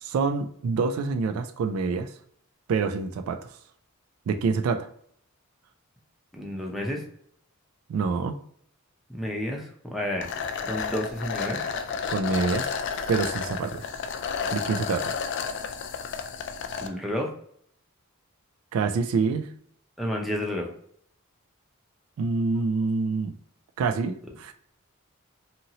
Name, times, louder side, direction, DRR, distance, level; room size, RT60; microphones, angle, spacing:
voice 1, 0.0-2.1 2.7-3.5 4.3-4.9 7.9-8.4 12.1-12.7 13.1-13.9 14.5-15.1 18.7-19.5 22.2-23.4 23.8-24.5, right 4 dB, 90° right, 8 dB, 0.3 m, -26 dB
voice 2, 6.3-7.0 9.1-10.4 10.7-11.6 16.8-17.3 20.0-20.7, equal, ahead, 0 dB, 0.5 m, -30 dB
sound 1, 10.2-16.9, left 6 dB, 60° left, 0.4 m, -31 dB
2.8 x 2.7 x 2.7 m, 0.65 s
head